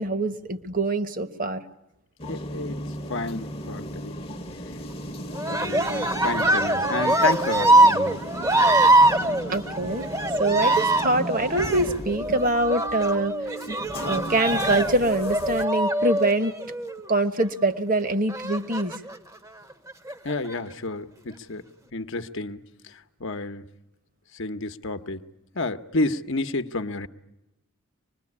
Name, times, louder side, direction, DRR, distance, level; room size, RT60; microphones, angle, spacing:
voice 1, 0.0-1.6 9.5-10.1 10.4-13.3 14.1-16.5 17.1-18.9, right 2 dB, 35° right, 1.1 m, -24 dB
sound 1, 2.2-15.6, equal, 25° left, 1.0 m, -36 dB
voice 2, 2.3-2.8 3.1-4.2 5.5-8.2 9.2-9.6 20.2-21.6 21.9-22.9 23.2-23.6 24.3-25.3 25.5-27.1, left 2 dB, 55° left, 0.9 m, -30 dB
Cheering, 5.3-17.0 18.3-19.2 19.9-20.5, right 1 dB, 15° right, 0.9 m, -23 dB
24.5 x 21.0 x 9.7 m
head